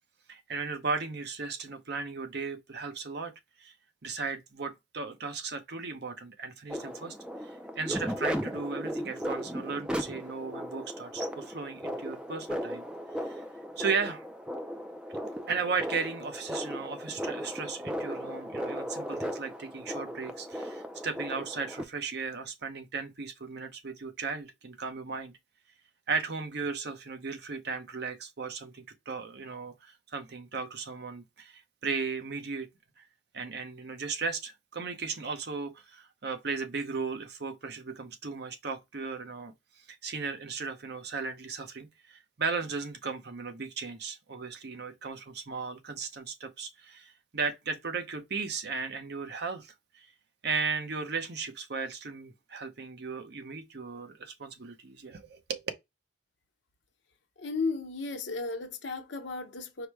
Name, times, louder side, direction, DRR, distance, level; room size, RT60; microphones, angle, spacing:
voice 1, 0.3-3.3 3.6-3.7 4.0-7.2 7.4-12.8 13.1-13.4 13.8-14.2 15.5-25.3 26.1-32.7 33.0-33.1 33.3-50.1 50.4-55.6, right 5 dB, 60° right, 0.8 m, -36 dB
sound 1, 6.7-21.8, equal, 5° right, 0.4 m, -36 dB
voice 2, 57.4-59.9, left 3 dB, 70° left, 0.9 m, -34 dB
4.9 x 2.1 x 4.6 m
head